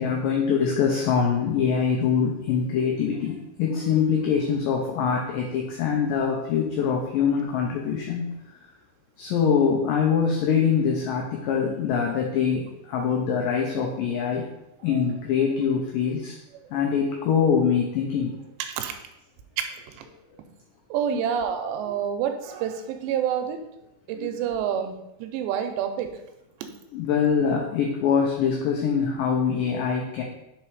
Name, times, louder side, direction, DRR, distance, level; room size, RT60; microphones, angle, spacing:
voice 1, 0.0-8.3 9.2-14.4 14.8-16.4 16.7-18.3 21.1-21.2 24.2-24.3 26.9-30.2, left 6 dB, 90° left, 0 dB, 1.9 m, -24 dB
voice 2, 18.6-18.9 20.0-20.1 20.9-23.6 24.1-26.1, right 8 dB, 85° right, 7 dB, 2.8 m, -28 dB
5.6 x 4.4 x 4.6 m, 0.89 s
omnidirectional pair, 4.9 m